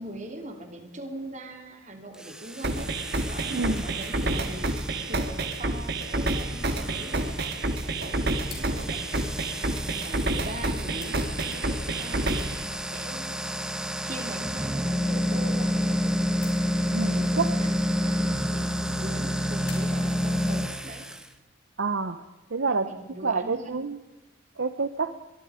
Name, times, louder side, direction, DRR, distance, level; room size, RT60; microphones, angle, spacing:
voice 1, 0.0-2.9 3.2-4.7 5.1-7.4 7.8-13.5 14.0-16.0 16.7-21.0 22.7-23.8, right 1 dB, 35° right, 5 dB, 3.3 m, -41 dB
sound 1, 2.1-21.3, equal, 5° right, 1.4 m, -30 dB
sound 2, 2.6-12.6, right 2 dB, 55° right, 1.9 m, -29 dB
voice 2, 3.5-3.8 16.9-17.6 21.8-22.2 22.5-22.9 23.2-24.0 24.6-25.1, right 4 dB, 70° right, 11 dB, 0.9 m, -28 dB
sound 3, 8.5-10.5 11.0-15.7 16.4-18.9 19.7-20.1, left 6 dB, 50° left, 6.1 m, -52 dB
24.0 x 23.5 x 5.1 m, 1.1 s
head